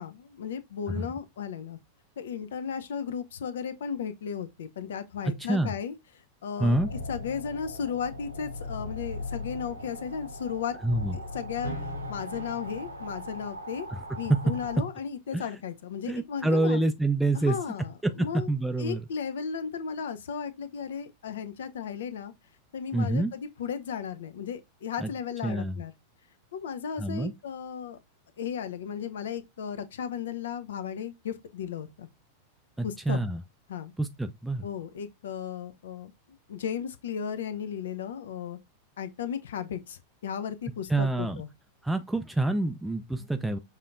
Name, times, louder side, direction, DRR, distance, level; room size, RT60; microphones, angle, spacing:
voice 1, 0.0-1.8 2.2-5.9 6.4-6.8 7.1-10.7 11.1-11.7 12.1-13.9 14.2-16.8 17.3-18.5 18.8-22.3 22.7-25.9 26.5-28.0 28.4-32.1 32.8-33.2 33.7-33.9 34.6-36.1 36.5-38.6 39.0-41.5, left 7 dB, 60° left, 0.6 m, -35 dB
voice 2, 5.4-5.7 6.6-6.9 10.8-11.1 13.9-14.0 15.3-15.4 16.1-17.6 18.0-19.0 22.9-23.3 25.0-25.1 25.4-25.8 27.0-27.3 32.8-33.4 34.0-34.6 40.9-41.4 41.8-43.6, right 2 dB, 5° right, 0.4 m, -27 dB
sound 1, 6.6-14.8, left 1 dB, 85° right, 1.0 m, -38 dB
6.5 x 2.7 x 2.4 m
figure-of-eight pair, 90°, 0 cm